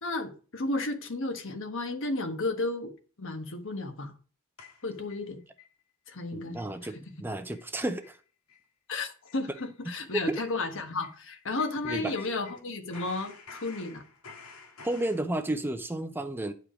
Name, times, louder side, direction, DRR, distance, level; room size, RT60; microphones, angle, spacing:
voice 1, 0.0-2.9 3.2-4.1 4.8-5.4 6.1-6.6 8.9-14.0, left 2 dB, 60° left, 1.3 m, -33 dB
sound 1, 4.6-5.7 6.1-6.2 6.6-6.8 7.1-7.2 7.5-7.7 8.0-8.2 8.5-8.6 9.0-12.6 12.9-15.2, left 5 dB, 90° left, 1.8 m, -50 dB
voice 2, 6.3-8.2 11.8-12.1 14.8-16.5, right 1 dB, 10° right, 0.6 m, -32 dB
10.5 x 4.9 x 5.1 m
head